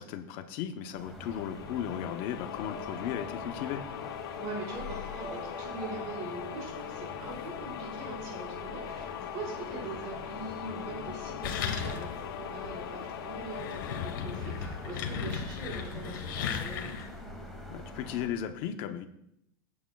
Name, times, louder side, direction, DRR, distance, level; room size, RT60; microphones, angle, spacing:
voice 1, 0.0-3.8 17.7-19.1, left 9 dB, 35° left, 9 dB, 0.7 m, -36 dB
sound 1, 1.0-18.3, left 1 dB, ahead, 1.5 m, -45 dB
sound 2, 1.2-15.8, left 10 dB, 85° left, 0.7 m, -41 dB
voice 2, 4.4-16.9, right 2 dB, 40° right, -3 dB, 4.3 m, -42 dB
sound 3, 11.4-12.3 12.6-12.7 13.4-17.2, left 7 dB, 65° left, 1.3 m, -36 dB
17.5 x 8.6 x 2.3 m, 0.78 s
supercardioid pair, 175°, 12 cm